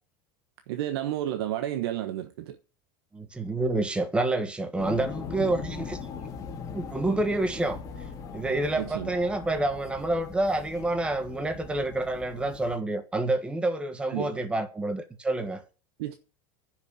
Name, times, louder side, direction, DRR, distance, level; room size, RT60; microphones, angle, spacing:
voice 1, 0.7-2.6 8.8-9.1 14.1-14.4 16.0-16.1, right 12 dB, 85° right, 1.2 m, -31 dB
voice 2, 3.1-6.0 6.7-7.8 8.3-15.6, right 2 dB, 10° right, 1.5 m, -28 dB
sound 1, 4.8-12.8, left 6 dB, 30° left, 2.8 m, -40 dB
10.5 x 6.4 x 8.2 m
supercardioid pair, 155°, 13 cm